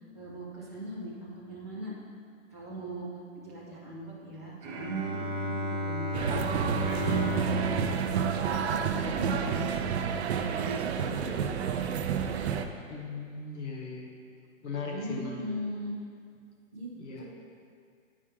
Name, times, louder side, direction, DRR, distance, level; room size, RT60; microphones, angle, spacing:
voice 1, 0.1-1.9 2.5-3.1 3.4-6.4 6.9-8.1 8.5-9.8 10.4-12.4 14.9-16.0 16.7-16.9 17.2-17.3, right 1 dB, 15° left, -10 dB, 0.3 m, -40 dB
Bowed string instrument, 4.6-9.9, equal, 30° right, 1.0 m, -35 dB
sound 1, 6.1-12.6, right 7 dB, 55° right, 0.5 m, -30 dB
voice 2, 12.9-14.1 14.6-15.4 16.9-17.2, left 4 dB, 60° left, -1 dB, 1.2 m, -38 dB
10.0 x 4.8 x 3.0 m, 2.3 s
hypercardioid pair, 150°, 40 cm